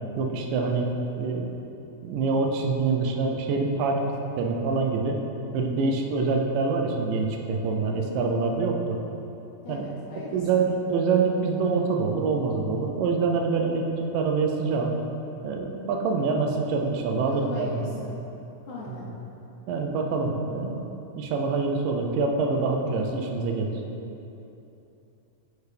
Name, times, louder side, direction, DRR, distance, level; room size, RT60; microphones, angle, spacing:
voice 1, 0.2-0.9 1.2-1.5 2.0-4.1 4.4-5.2 5.5-9.0 9.7-9.8 10.3-15.0 15.4-17.9 18.9-19.1 19.7-23.7, right 4 dB, 90° right, 2 dB, 2.3 m, -25 dB
voice 2, 9.6-10.6 17.3-18.1 18.7-19.1, left 3 dB, 75° left, -5 dB, 1.9 m, -38 dB
6.8 x 4.7 x 3.3 m, 3.0 s
omnidirectional pair, 3.8 m